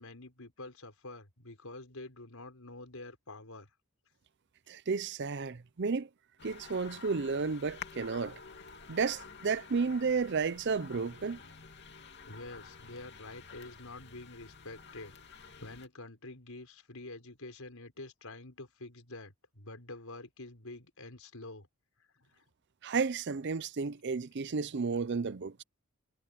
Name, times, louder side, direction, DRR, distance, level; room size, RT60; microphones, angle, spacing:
voice 1, 0.0-3.7 12.3-21.7 22.2-22.4, left 2 dB, 80° left, 4.9 m, -47 dB
voice 2, 4.7-6.1 6.4-8.4 8.9-11.4 22.8-25.6, right 5 dB, 50° right, 0.6 m, -32 dB
sound 1, 6.4-15.9, left 5 dB, 50° left, 2.9 m, -50 dB
head